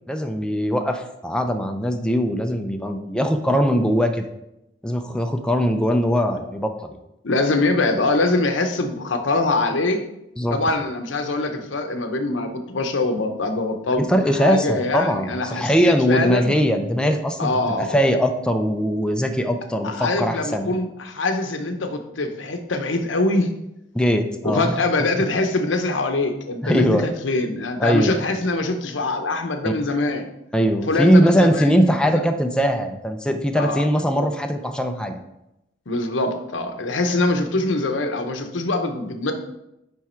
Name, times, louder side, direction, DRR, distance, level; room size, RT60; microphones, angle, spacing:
voice 1, 0.1-4.3 4.8-6.9 10.4-10.6 14.1-20.7 23.9-24.8 26.6-27.1 27.8-28.2 29.6-29.7 30.5-35.2, equal, 5° left, 5 dB, 0.4 m, -21 dB
voice 2, 7.2-10.0 10.5-14.0 14.4-16.5 17.4-17.9 19.8-23.5 24.4-30.3 30.8-32.2 33.6-33.8 35.9-39.3, left 2 dB, 80° left, 6 dB, 0.8 m, -23 dB
9.2 x 3.5 x 4.4 m, 0.87 s
head